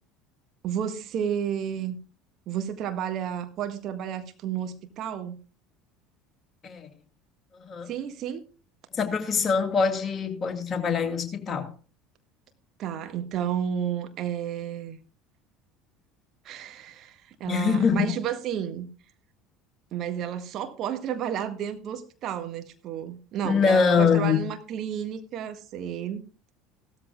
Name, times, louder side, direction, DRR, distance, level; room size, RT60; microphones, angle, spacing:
voice 1, 0.6-1.9 2.5-5.4 7.9-8.4 12.8-15.0 16.4-18.9 19.9-26.3, right 9 dB, 50° right, 1.6 m, -32 dB
voice 2, 8.9-11.7 17.4-18.1 23.4-24.5, left 5 dB, 30° left, 2.4 m, -23 dB
16.5 x 13.5 x 2.3 m
figure-of-eight pair, 65°, 0 cm